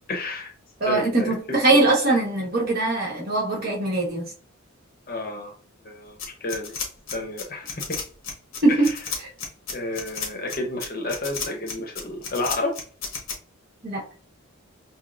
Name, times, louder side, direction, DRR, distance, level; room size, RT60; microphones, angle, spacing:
voice 1, 0.1-0.5 0.9-1.6 5.1-5.5 5.8-6.7 7.1-8.0 8.8-8.9 9.7-12.8, left 2 dB, 45° left, 0.8 m, -31 dB
voice 2, 0.8-4.3 8.6-8.9 13.8-14.0, right 2 dB, 45° right, 1.2 m, -21 dB
sound 1, 6.2-13.3, left 5 dB, 70° left, 0.9 m, -32 dB
5.9 x 2.0 x 2.5 m
head